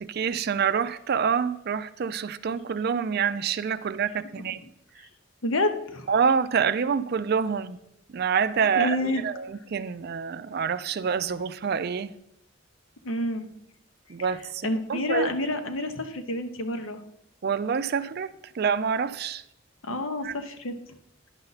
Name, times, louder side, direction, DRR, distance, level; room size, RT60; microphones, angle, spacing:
voice 1, 0.0-4.6 6.1-7.8 8.1-12.1 14.1-15.3 17.4-19.4 20.2-20.4, right 6 dB, 50° right, 0.4 m, -27 dB
voice 2, 5.4-6.1 8.7-9.2 13.0-13.5 14.6-17.0 19.8-20.7, left 1 dB, 85° left, 0.9 m, -28 dB
10.5 x 6.7 x 4.0 m
head